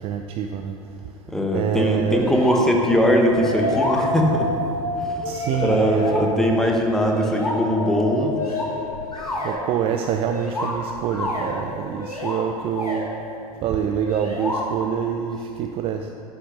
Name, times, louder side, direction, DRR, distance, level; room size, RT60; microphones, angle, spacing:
voice 1, 0.0-1.2 1.5-2.3 5.2-6.7 8.2-8.4 9.4-13.2 13.6-16.1, right 8 dB, 30° right, 5 dB, 0.4 m, -26 dB
voice 2, 1.3-4.5 5.0-5.2 5.6-8.4, equal, ahead, 1 dB, 1.1 m, -21 dB
sound 1, 2.0-2.6 3.0-3.1 3.4-4.4 5.2-6.2 7.0-7.6 8.4-9.6 10.3-11.6 12.0-12.4 12.7-13.1 14.0-14.6, left 1 dB, 80° left, 1.7 m, -29 dB
sound 2, 2.8-9.3, left 2 dB, 45° left, 1.2 m, -29 dB
9.5 x 6.1 x 6.1 m, 2.7 s
figure-of-eight pair, 85°, 19 cm